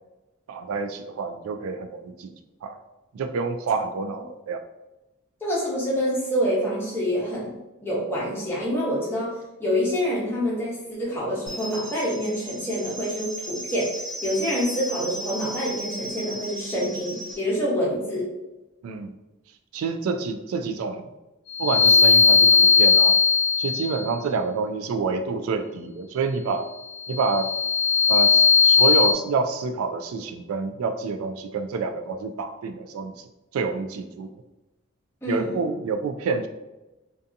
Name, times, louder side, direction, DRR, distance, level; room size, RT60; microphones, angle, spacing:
voice 1, 0.5-2.3 2.6-2.8 3.1-4.6 18.8-19.1 19.7-21.1 21.6-23.1 23.6-26.7 27.1-27.5 28.1-33.3 33.5-34.3 35.3-36.5, right 4 dB, 90° right, 8 dB, 0.3 m, -28 dB
voice 2, 5.4-13.9 14.2-18.3 35.2-35.6, equal, 10° left, -6 dB, 0.7 m, -26 dB
sound 1, 11.5-17.4, right 1 dB, 50° right, 1.0 m, -36 dB
sound 2, 21.5-24.1 27.0-29.1, left 5 dB, 75° left, 0.4 m, -17 dB
2.6 x 2.3 x 2.5 m, 1.0 s
head